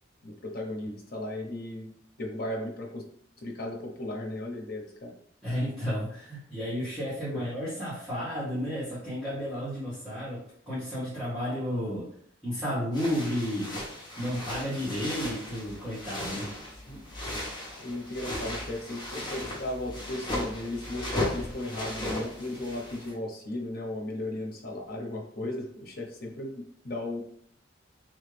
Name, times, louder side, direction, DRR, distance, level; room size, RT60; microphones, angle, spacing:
voice 1, 0.2-1.9 2.2-3.0 3.4-5.1 7.3-7.5 16.9-17.0 17.8-27.2, left 1 dB, 50° left, 0 dB, 1.0 m, -36 dB
voice 2, 5.4-10.4 10.7-12.1 12.4-13.7 14.2-16.5, equal, ahead, -14 dB, 1.5 m, -32 dB
sound 1, 12.9-23.1, left 1 dB, 25° left, 1.0 m, -36 dB
3.6 x 3.2 x 3.3 m, 0.65 s
head